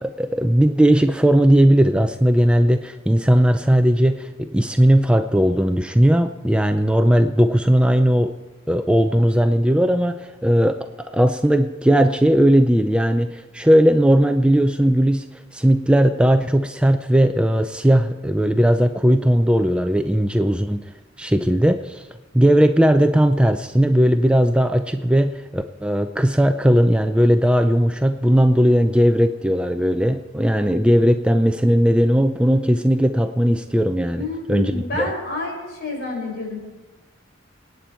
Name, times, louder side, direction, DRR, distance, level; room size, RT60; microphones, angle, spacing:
voice 1, 0.0-8.3 8.7-15.3 15.5-20.9 21.2-22.0 22.3-35.1, equal, 5° right, 7 dB, 0.5 m, -17 dB
voice 2, 34.1-36.6, left 3 dB, 55° left, -2 dB, 6.4 m, -29 dB
27.5 x 9.2 x 4.4 m, 1.2 s
head